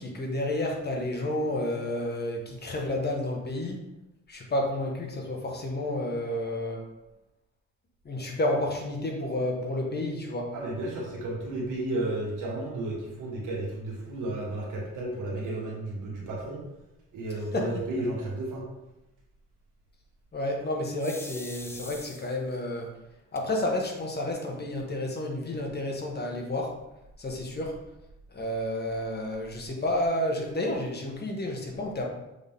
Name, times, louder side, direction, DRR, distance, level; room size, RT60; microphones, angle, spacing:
voice 1, 0.0-3.8 4.3-6.9 8.0-10.5 17.5-17.7 20.3-22.9 23.3-26.8 27.2-27.8 28.3-32.1, left 1 dB, 35° left, 0 dB, 1.6 m, -30 dB
voice 2, 10.5-16.7 17.1-18.6, right 2 dB, 80° right, -3 dB, 2.1 m, -33 dB
sound 1, 21.0-22.6 23.3-23.4 23.9-24.0 24.2-24.8, left 1 dB, 10° left, 0.6 m, -44 dB
6.9 x 4.1 x 3.7 m, 0.97 s
cardioid pair, 90°, 30 cm